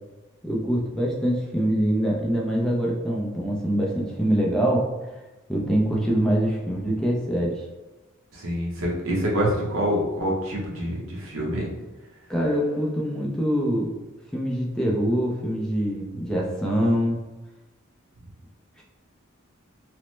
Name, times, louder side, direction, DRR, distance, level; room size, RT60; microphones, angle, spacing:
voice 1, 0.4-4.9 5.5-7.6 12.3-13.9 14.3-17.2, equal, 5° left, -3 dB, 0.4 m, -24 dB
voice 2, 8.3-11.7, equal, 75° right, -3 dB, 0.8 m, -26 dB
3.0 x 2.0 x 3.1 m, 1.1 s
head